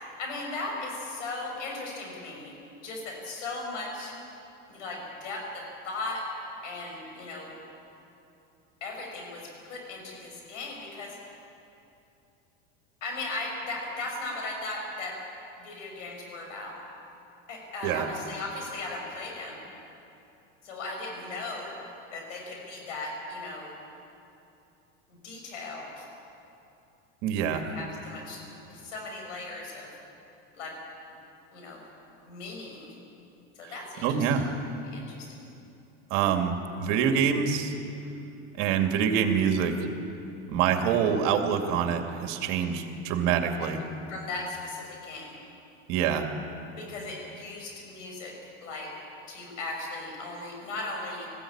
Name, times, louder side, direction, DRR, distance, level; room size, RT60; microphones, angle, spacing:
voice 1, 0.2-2.5 2.8-4.1 4.7-6.2 6.6-7.6 8.8-11.2 13.0-15.2 15.6-16.8 17.5-19.6 20.6-23.7 25.1-26.0 27.5-29.9 30.5-30.7 31.5-31.8 32.3-32.9 33.6-34.4 34.9-35.5 43.6-43.7 44.1-45.3 46.8-48.3 48.6-48.9 49.3-51.3, left 2 dB, 90° left, 0 dB, 6.6 m, -37 dB
voice 2, 27.2-27.6 34.0-34.5 36.1-37.7 38.6-39.8 40.5-43.8 45.9-46.3, right 7 dB, 65° right, 5 dB, 2.5 m, -25 dB
20.0 x 15.5 x 8.8 m, 2.8 s
supercardioid pair, 110°, 36 cm